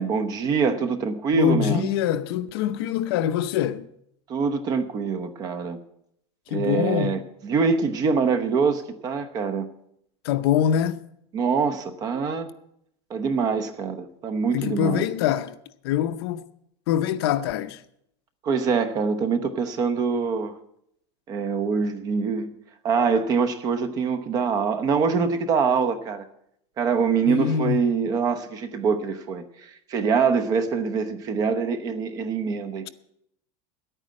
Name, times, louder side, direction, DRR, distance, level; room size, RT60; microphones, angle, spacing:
voice 1, 0.0-1.9 4.3-5.8 6.5-9.7 11.3-12.5 13.1-15.0 18.4-20.5 21.3-22.5 22.8-26.2 26.8-32.9, right 5 dB, 25° right, 0.8 m, -24 dB
voice 2, 1.3-3.9 6.5-7.2 10.2-11.0 14.5-15.6 15.8-16.4 16.9-17.8 27.3-27.8, left 10 dB, 60° left, 0.7 m, -24 dB
10.5 x 9.1 x 7.5 m
supercardioid pair, 170°, 14 cm